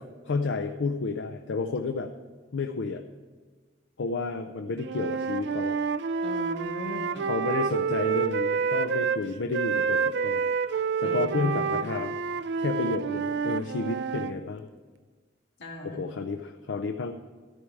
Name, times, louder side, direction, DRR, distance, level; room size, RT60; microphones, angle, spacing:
voice 1, 0.0-2.1 2.5-3.0 4.0-5.8 7.2-12.2 12.6-14.7 15.8-17.1, left 4 dB, 80° left, 6 dB, 0.5 m, -31 dB
Wind instrument woodwind instrument, 4.8-9.2 9.5-14.3, right 6 dB, 65° right, 0.4 m, -28 dB
voice 2, 6.2-7.3 11.0-11.7 15.6-16.0, left 1 dB, 65° left, -1 dB, 2.3 m, -38 dB
13.5 x 4.7 x 8.6 m, 1.5 s
head